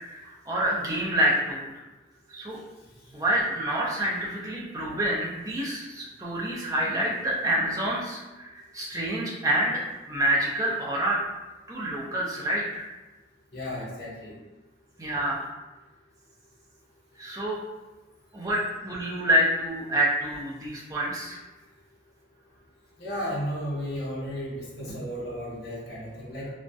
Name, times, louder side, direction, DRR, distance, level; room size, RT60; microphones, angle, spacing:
voice 1, 0.0-1.8 2.3-2.6 3.1-9.8 10.1-11.2 11.7-12.8 15.0-15.5 17.2-17.6 18.3-21.4, right 1 dB, 20° right, -5 dB, 0.4 m, -27 dB
voice 2, 13.5-14.4 23.0-26.5, equal, 55° left, -6 dB, 0.6 m, -34 dB
2.3 x 2.1 x 2.6 m, 1.1 s
head